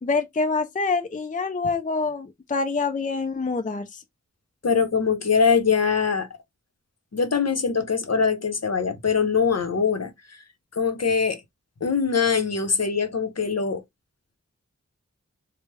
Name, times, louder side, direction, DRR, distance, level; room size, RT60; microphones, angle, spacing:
voice 1, 0.0-4.0, left 4 dB, 25° left, 0.4 m, -26 dB
voice 2, 4.6-6.3 7.1-10.1 10.8-11.4 11.8-13.8, left 5 dB, 60° left, 0.8 m, -22 dB
3.3 x 2.1 x 3.1 m
wide cardioid pair, 50°, 30 cm